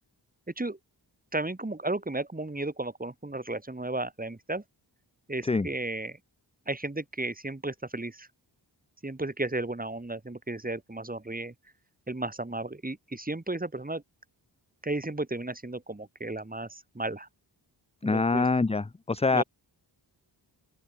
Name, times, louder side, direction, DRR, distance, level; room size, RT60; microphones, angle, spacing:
voice 1, 1.3-4.6 5.3-6.2 6.7-8.3 9.0-11.5 12.1-14.0 14.8-17.3 18.0-18.5 19.3-19.4, right 2 dB, 20° right, 3.1 m, -34 dB
voice 2, 18.0-19.4, left 3 dB, 15° left, 0.5 m, -25 dB
open air
wide cardioid pair, 115°, 45 cm